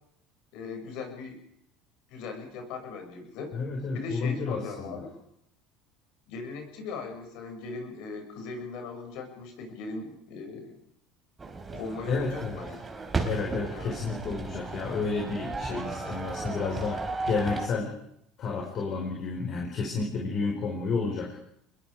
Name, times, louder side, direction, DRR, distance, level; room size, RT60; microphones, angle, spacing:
voice 1, 0.5-1.4 2.1-3.5 3.9-5.1 6.3-10.8 11.7-12.8 13.7-13.9, left 4 dB, 70° left, 4 dB, 6.9 m, -38 dB
voice 2, 3.5-5.0 12.1-12.6 13.2-17.9 18.4-21.3, left 4 dB, 50° left, 0 dB, 5.3 m, -31 dB
sound 1, 11.4-17.7, right 3 dB, 20° right, 3.5 m, -35 dB
26.5 x 21.5 x 5.1 m, 0.72 s
supercardioid pair, 95°, 0 cm